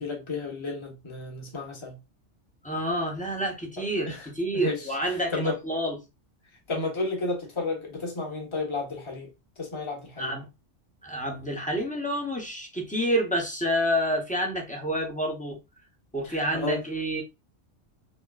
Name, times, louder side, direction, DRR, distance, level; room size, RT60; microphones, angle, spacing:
voice 1, 0.0-2.0 4.1-4.2 4.6-4.8 5.3-5.6 6.7-9.3 9.6-10.3 16.2-16.8, left 3 dB, 25° left, 1.2 m, -32 dB
voice 2, 2.6-6.0 10.2-10.5 11.0-15.6 16.1-17.2, equal, 5° left, 0.8 m, -28 dB
5.3 x 2.2 x 2.4 m
omnidirectional pair, 1.3 m